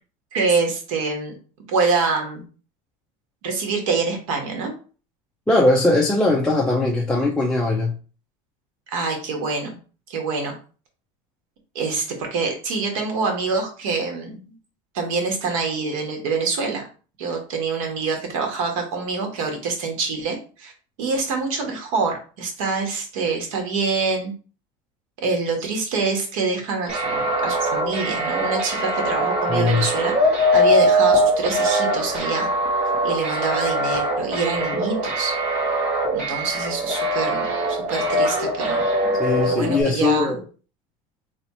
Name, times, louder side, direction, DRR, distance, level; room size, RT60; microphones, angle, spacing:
voice 1, 0.3-1.3 1.7-2.4 3.4-4.7 8.9-9.8 10.1-10.6 11.7-14.4 14.9-16.8 17.2-20.7 21.0-24.3 25.2-32.5 33.0-35.3 36.1-39.2 39.4-40.3, right 4 dB, 85° right, 1.4 m, -25 dB
voice 2, 5.5-8.0 29.5-29.9 39.2-40.4, left 2 dB, 5° left, 0.4 m, -20 dB
sound 1, 26.9-39.8, equal, 40° right, 1.4 m, -22 dB
3.2 x 2.8 x 4.2 m
cardioid pair, 150°, 17 cm